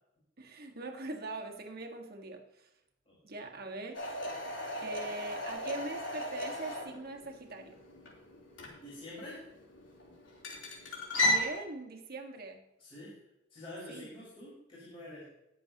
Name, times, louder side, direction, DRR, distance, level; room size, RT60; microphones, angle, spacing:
voice 1, 0.4-2.7 3.2-4.1 4.8-7.8 11.2-12.6 13.9-14.1, right 2 dB, 55° right, 3 dB, 1.7 m, -42 dB
sound 1, 3.9-11.5, left 1 dB, 75° left, 3.6 m, -36 dB
voice 2, 8.8-9.4 12.8-13.2 13.5-15.2, left 1 dB, 30° left, -9 dB, 4.9 m, -47 dB
20.5 x 7.5 x 3.0 m, 0.89 s
head